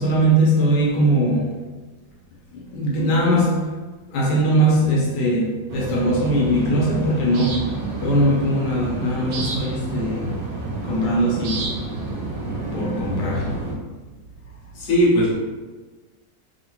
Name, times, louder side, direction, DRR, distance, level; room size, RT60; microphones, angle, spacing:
voice 1, 0.0-1.6 2.5-3.8 4.1-10.4 10.8-11.7 12.7-13.5, right 1 dB, 85° left, 1.3 m, -20 dB
sound 1, 5.7-13.7, right 3 dB, 90° right, 1.3 m, -29 dB
voice 2, 14.7-15.4, equal, 55° left, 1.3 m, -18 dB
3.6 x 2.1 x 2.9 m
omnidirectional pair, 1.9 m